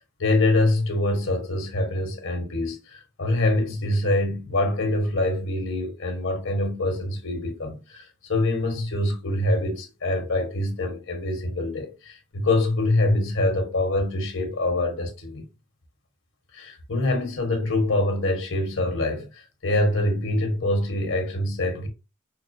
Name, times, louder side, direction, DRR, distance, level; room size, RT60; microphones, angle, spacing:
voice 1, 0.2-15.5 16.5-21.9, left 2 dB, 90° left, 1.3 m, -25 dB
5.7 x 2.3 x 2.7 m
head